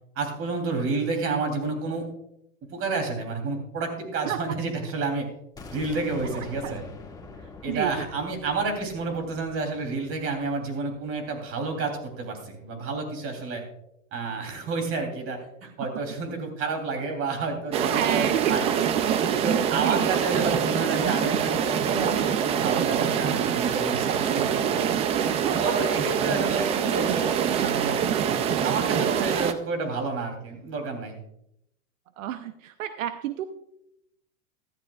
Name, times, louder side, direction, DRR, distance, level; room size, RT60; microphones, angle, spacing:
voice 1, 0.1-2.1 2.7-5.3 5.7-6.9 7.6-13.6 14.1-15.4 15.8-18.7 19.3-24.6 25.1-28.1 28.6-31.2, right 3 dB, 35° right, 5 dB, 3.1 m, -30 dB
sound 1, 5.6-11.3, left 4 dB, 10° left, 1.9 m, -45 dB
voice 2, 6.3-6.7 7.7-8.1 15.6-15.7 17.8-19.2 19.8-20.2 25.3-25.7 32.2-33.4, right 11 dB, 80° right, 10 dB, 0.8 m, -30 dB
sound 2, 17.7-29.5, right 8 dB, 15° right, 0.3 m, -25 dB
14.5 x 13.5 x 2.3 m, 0.78 s
supercardioid pair, 130°, 39 cm